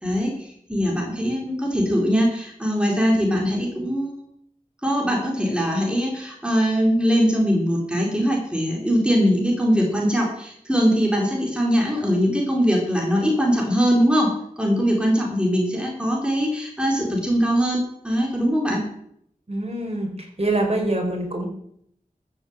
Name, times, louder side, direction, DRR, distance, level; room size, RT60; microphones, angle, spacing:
voice 1, 0.0-4.1 4.8-14.3 14.6-18.8, equal, 5° right, -1 dB, 3.7 m, -21 dB
voice 2, 19.5-20.1 20.4-21.5, right 2 dB, 45° right, 2 dB, 4.5 m, -24 dB
14.0 x 7.6 x 7.8 m, 0.69 s
wide cardioid pair, 65°, 15 cm